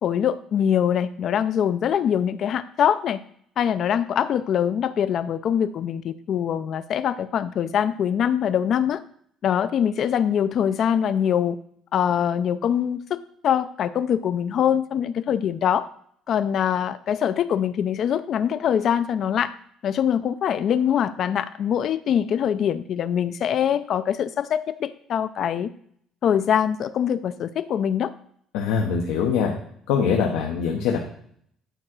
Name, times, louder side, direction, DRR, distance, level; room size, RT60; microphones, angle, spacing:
voice 1, 0.0-3.2 3.6-9.0 9.4-11.6 11.9-13.2 13.4-15.9 16.3-19.5 19.8-25.7 26.2-28.1, left 9 dB, 60° left, 13 dB, 0.5 m, -23 dB
voice 2, 28.5-29.5 29.9-31.0, left 6 dB, 90° left, 1 dB, 1.0 m, -23 dB
9.2 x 3.7 x 6.1 m, 0.66 s
supercardioid pair, 85°, 0 cm